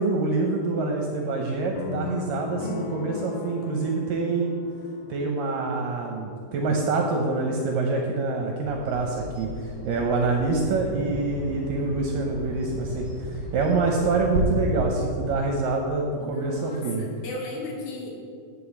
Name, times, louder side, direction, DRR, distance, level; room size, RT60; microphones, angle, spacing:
voice 1, 0.0-4.5 5.1-9.5 9.8-17.1, right 3 dB, 75° right, 1 dB, 2.1 m, -26 dB
sound 1, 1.7-5.9, left 7 dB, 85° left, 2.7 m, -37 dB
Bird vocalization bird call bird song, 8.6-14.4, equal, 30° left, 1.6 m, -35 dB
voice 2, 16.2-18.1, left 2 dB, 70° left, -1 dB, 3.1 m, -36 dB
10.0 x 5.0 x 7.1 m, 2.3 s
omnidirectional pair, 4.6 m